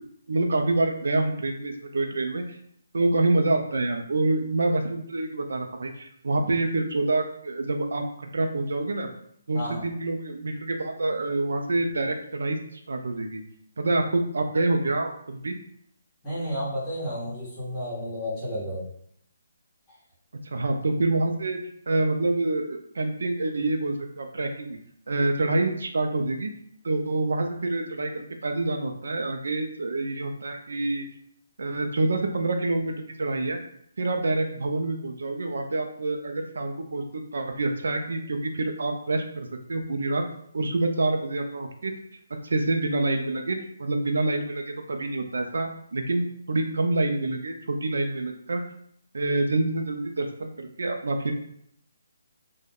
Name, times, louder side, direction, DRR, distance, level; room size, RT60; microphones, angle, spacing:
voice 1, 0.3-2.6 2.9-9.1 9.5-13.4 13.8-15.6 20.4-21.6 21.9-24.8 25.1-26.5 26.8-31.1 31.6-33.6 34.0-40.2 40.5-41.9 42.4-48.6 49.1-51.3, right 2 dB, 75° right, 4 dB, 0.4 m, -27 dB
voice 2, 9.5-9.8 16.2-18.8, equal, 15° left, -11 dB, 1.0 m, -31 dB
2.3 x 2.1 x 3.3 m, 0.69 s
hypercardioid pair, 170°, 0 cm